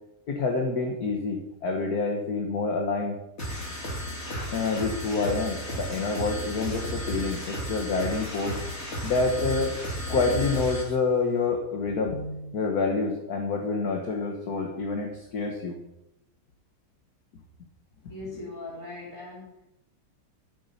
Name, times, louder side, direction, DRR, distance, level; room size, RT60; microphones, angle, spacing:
voice 1, 0.3-3.2 4.5-8.6 9.0-9.7 10.1-15.8, left 4 dB, 50° left, 2 dB, 1.7 m, -27 dB
sound 1, 3.4-11.0, equal, 30° left, 2.9 m, -33 dB
voice 2, 18.1-19.6, left 2 dB, 10° left, -7 dB, 3.2 m, -40 dB
13.5 x 8.5 x 5.7 m, 0.87 s
omnidirectional pair, 2.4 m